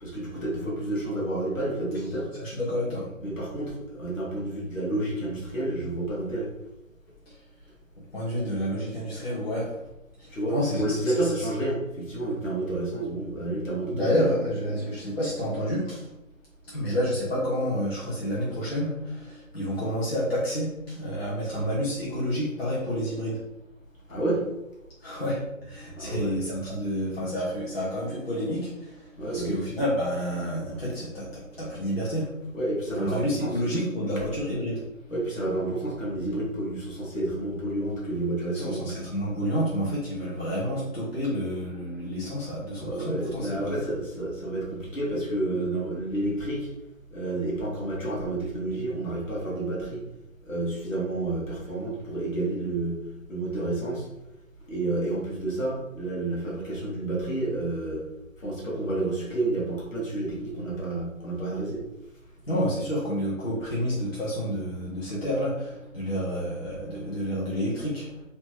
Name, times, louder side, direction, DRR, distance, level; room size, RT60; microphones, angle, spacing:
voice 1, 0.0-2.3 3.2-6.5 10.3-14.3 24.1-24.4 26.0-26.4 29.2-29.6 32.5-33.5 35.1-38.9 42.7-46.7 47.1-50.0 50.4-53.0 53.3-54.1 54.7-58.0 58.4-61.8, right 2 dB, 70° left, -4 dB, 1.3 m, -30 dB
voice 2, 2.4-3.1 7.3-7.4 8.1-9.8 10.2-11.5 13.9-16.1 16.7-23.4 25.0-32.4 33.0-34.8 38.5-43.7 62.5-68.2, equal, 45° left, -8 dB, 0.9 m, -29 dB
2.8 x 2.2 x 3.0 m, 0.90 s
figure-of-eight pair, 175°, 41 cm